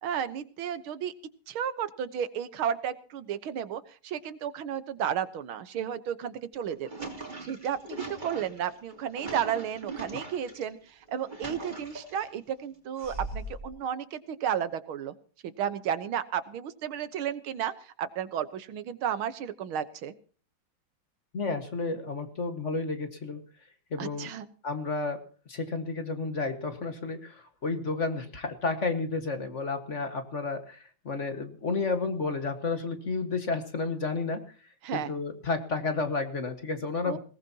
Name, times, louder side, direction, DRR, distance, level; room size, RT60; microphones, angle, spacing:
voice 1, 0.0-1.1 1.5-7.1 7.4-15.1 15.4-20.1 24.0-24.5 34.8-35.1 37.0-37.2, right 9 dB, 90° right, 12 dB, 2.0 m, -33 dB
sound 1, 6.5-10.6 11.1-12.3 13.0-13.7, right 2 dB, 20° right, 3.7 m, -40 dB
voice 2, 21.3-23.4 23.9-24.3 24.6-25.2 25.5-34.4 34.9-37.2, left 3 dB, 40° left, 7 dB, 1.8 m, -31 dB
21.0 x 18.5 x 2.9 m, 0.40 s
omnidirectional pair, 2.2 m